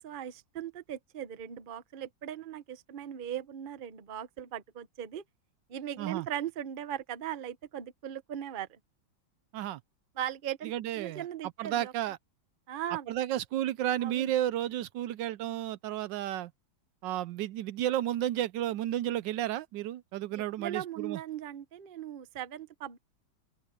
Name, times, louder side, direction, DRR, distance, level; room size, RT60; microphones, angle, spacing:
voice 1, 0.0-5.2 5.7-8.8 10.2-11.9 12.7-13.1 14.0-14.3 20.3-23.0, right 10 dB, 40° right, 0.8 m, -39 dB
voice 2, 10.6-11.3 11.6-12.2 13.1-16.5 17.0-21.2, right 12 dB, 80° right, 1.2 m, -32 dB
open air
omnidirectional pair, 2.0 m